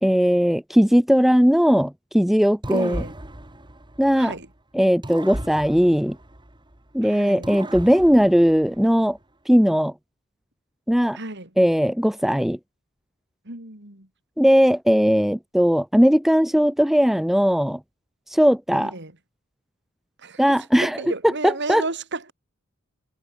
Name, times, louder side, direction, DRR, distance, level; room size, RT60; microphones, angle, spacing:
voice 1, 0.0-3.0 4.0-4.3 4.7-6.2 6.9-9.2 9.5-9.9 10.9-11.2 11.6-12.6 14.4-17.8 18.3-18.9 20.4-21.0 21.2-21.8, equal, ahead, 0.4 m, -18 dB
sound 1, 2.6-4.5 5.0-6.9 7.4-9.1, right 1 dB, 20° right, 2.9 m, -36 dB
voice 2, 2.7-3.1 4.1-4.5 7.0-7.5 11.1-11.5 13.5-14.1 18.7-19.1 20.2-20.4 20.8-22.3, right 2 dB, 55° right, 5.7 m, -32 dB
head